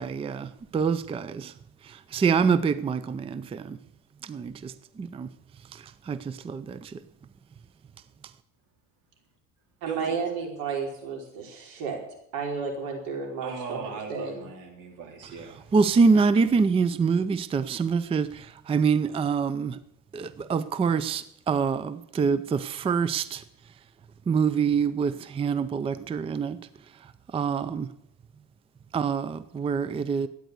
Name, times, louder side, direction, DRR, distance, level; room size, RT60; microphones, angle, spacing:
voice 1, 0.0-1.5 1.8-3.8 4.2-5.3 5.7-7.0 15.7-19.8 20.1-23.4 24.3-26.6 26.9-27.9 28.9-30.3, right 5 dB, 15° right, 15 dB, 0.4 m, -26 dB
voice 2, 9.8-12.0 12.3-14.4, right 5 dB, 85° right, 1 dB, 4.7 m, -32 dB
voice 3, 13.4-15.7, right 5 dB, 65° right, 2 dB, 4.0 m, -38 dB
13.5 x 9.4 x 8.1 m, 0.77 s
cardioid pair, 140°, 33 cm